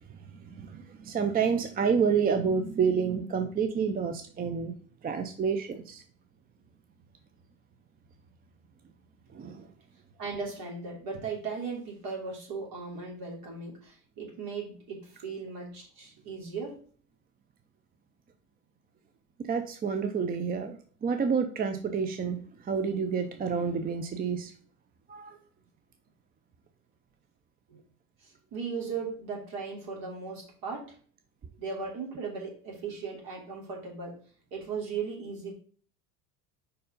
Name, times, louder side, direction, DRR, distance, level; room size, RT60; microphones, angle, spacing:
voice 1, 0.1-4.8 5.0-6.0 9.3-9.7 19.4-24.5 25.1-25.4, right 6 dB, 20° right, 7 dB, 0.6 m, -29 dB
voice 2, 10.2-16.8 27.7-27.8 28.5-30.9 31.6-34.2 34.5-35.5, right 5 dB, 55° right, -1 dB, 3.2 m, -37 dB
5.3 x 4.2 x 5.2 m, 0.44 s
hypercardioid pair, 90°, 42 cm